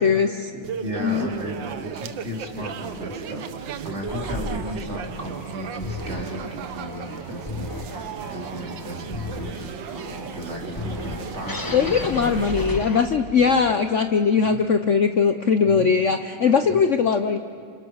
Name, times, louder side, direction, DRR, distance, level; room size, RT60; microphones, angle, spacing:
voice 1, 0.0-0.5 1.0-1.3 11.7-17.4, left 6 dB, 70° left, 8 dB, 0.7 m, -20 dB
voice 2, 0.5-9.9 10.3-12.4 13.3-13.6 14.3-14.6 15.6-15.9 16.6-16.7, equal, 30° right, -1 dB, 4.0 m, -35 dB
sound 1, 0.6-13.2, right 7 dB, 60° right, 1.6 m, -36 dB
sound 2, 4.1-13.5, left 2 dB, 15° left, 0.8 m, -35 dB
28.5 x 26.5 x 6.4 m, 2.3 s
omnidirectional pair, 2.4 m